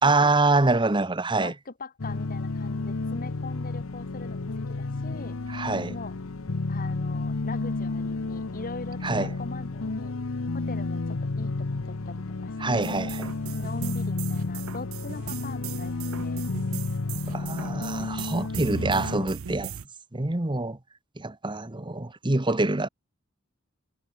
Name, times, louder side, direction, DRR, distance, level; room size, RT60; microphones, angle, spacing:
voice 1, 0.0-1.5 5.5-6.0 9.0-9.3 12.6-13.3 17.3-19.7 20.1-20.8 21.2-22.9, right 2 dB, 25° right, 1.1 m, -25 dB
voice 2, 1.4-5.4 5.9-6.1 6.7-10.2 10.5-12.9 13.5-16.4 17.6-17.8, left 3 dB, 45° left, 1.4 m, -41 dB
sound 1, 2.0-19.3, left 3 dB, 75° left, 0.9 m, -31 dB
sound 2, 12.8-19.9, right 7 dB, 80° right, 0.6 m, -38 dB
head